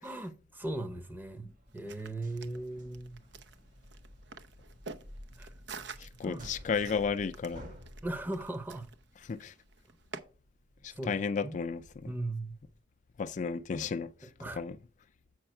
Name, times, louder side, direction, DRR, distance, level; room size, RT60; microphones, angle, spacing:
voice 1, 0.0-3.2 5.4-5.5 6.0-6.5 8.0-8.9 10.9-11.1 11.4-11.6 12.1-12.6 14.4-14.6, right 2 dB, 10° right, 0.7 m, -38 dB
sound 1, 0.6-12.8, equal, 50° right, 1.7 m, -53 dB
sound 2, 1.7-10.2, right 4 dB, 80° right, 0.7 m, -49 dB
voice 2, 6.0-7.7 9.2-9.5 10.8-12.1 13.2-14.3 14.6-14.8, left 5 dB, 45° left, 0.4 m, -33 dB
7.8 x 5.5 x 4.4 m
head